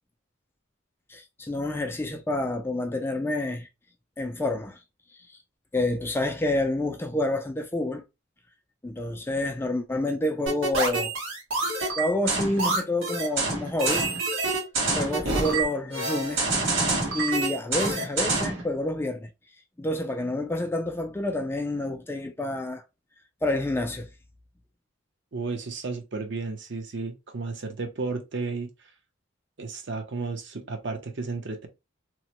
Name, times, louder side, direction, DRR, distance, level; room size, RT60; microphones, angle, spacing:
voice 1, 1.1-3.7 4.2-4.8 5.7-8.0 8.8-11.1 12.0-14.1 15.0-16.5 17.1-19.3 19.8-22.8 23.4-24.1, left 1 dB, 10° left, 0.3 m, -28 dB
sound 1, 10.5-18.6, right 3 dB, 85° right, 1.3 m, -27 dB
voice 2, 25.3-28.9 29.6-31.7, right 3 dB, 60° right, 0.7 m, -33 dB
3.0 x 2.1 x 2.9 m
head